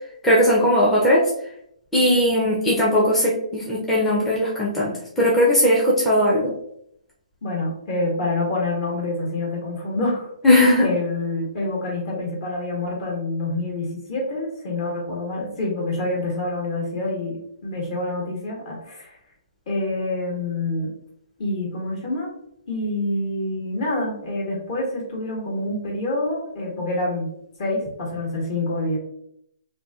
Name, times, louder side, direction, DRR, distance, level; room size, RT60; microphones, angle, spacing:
voice 1, 0.2-1.3 1.9-6.5 10.4-10.9, left 1 dB, 5° left, -7 dB, 0.5 m, -18 dB
voice 2, 7.4-10.3 10.8-19.2 19.7-20.9 21.4-22.3 22.7-27.3 27.6-29.0, left 2 dB, 45° left, -2 dB, 1.3 m, -27 dB
2.6 x 2.6 x 2.3 m, 0.71 s
hypercardioid pair, 150°, 4 cm